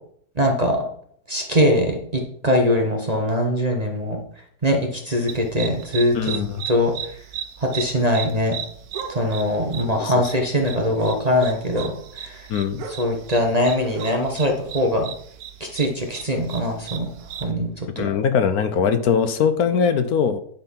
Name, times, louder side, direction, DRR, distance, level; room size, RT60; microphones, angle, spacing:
voice 1, 0.4-0.8 1.3-4.2 4.6-6.4 6.7-6.9 7.6-8.6 9.1-12.5 13.0-15.1 15.6-17.1 17.4-18.1, equal, 30° right, 2 dB, 0.9 m, -22 dB
sound 1, 5.3-17.5, right 8 dB, 70° right, 1.3 m, -36 dB
voice 2, 6.1-6.6 10.0-10.3 12.5-12.8 18.0-20.4, left 7 dB, 70° left, 10 dB, 1.1 m, -21 dB
10.5 x 4.1 x 5.7 m, 0.64 s
omnidirectional pair, 1.8 m